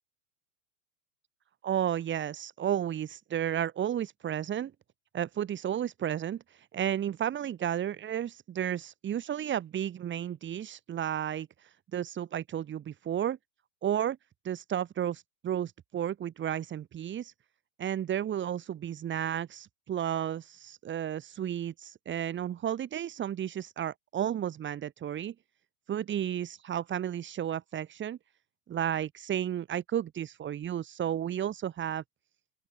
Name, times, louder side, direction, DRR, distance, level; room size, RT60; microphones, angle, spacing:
voice 1, 1.6-4.7 5.1-13.4 13.8-14.2 14.4-17.3 17.8-25.3 25.9-28.2 28.7-32.0, right 10 dB, 25° right, 7.5 m, -33 dB
open air
hypercardioid pair, 100°, 41 cm